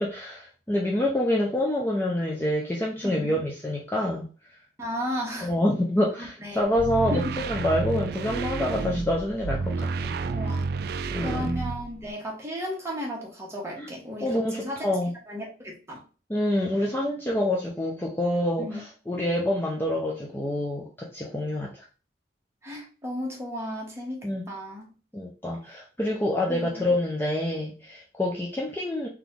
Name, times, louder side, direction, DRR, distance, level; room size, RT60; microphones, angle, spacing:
voice 1, 0.0-4.2 5.4-10.1 11.1-11.6 13.8-13.9 14.2-15.1 16.3-21.8 24.2-24.4 25.1-29.1, left 1 dB, 10° left, -2 dB, 0.5 m, -27 dB
voice 2, 3.0-3.4 4.8-5.5 6.2-6.6 7.1-7.3 10.3-10.7 11.2-14.9 15.3-16.0 18.6-18.8 22.6-24.9 26.5-26.8, equal, 15° right, -2 dB, 1.2 m, -34 dB
sound 1, 6.6-12.1, right 4 dB, 55° right, 0.3 m, -30 dB
3.9 x 2.9 x 3.5 m, 0.36 s
head